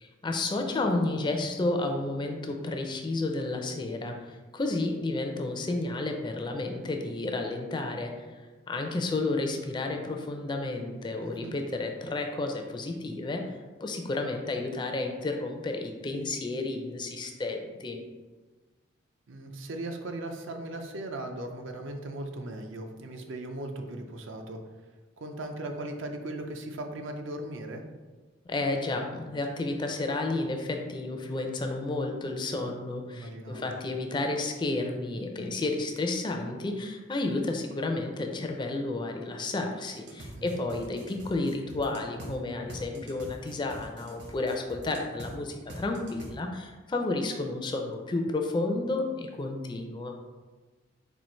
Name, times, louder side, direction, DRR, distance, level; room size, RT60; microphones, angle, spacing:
voice 1, 0.0-8.3 8.7-18.0 28.5-50.1, left 2 dB, 25° left, 3 dB, 0.4 m, -31 dB
voice 2, 11.2-11.5 19.3-24.6 25.2-27.8 33.1-33.7 40.3-40.6, right 1 dB, 75° right, 5 dB, 0.5 m, -38 dB
sound 1, 40.0-42.3 42.7-45.3 45.7-46.3, right 1 dB, 60° right, 0.8 m, -44 dB
4.4 x 2.5 x 4.2 m, 1.3 s
head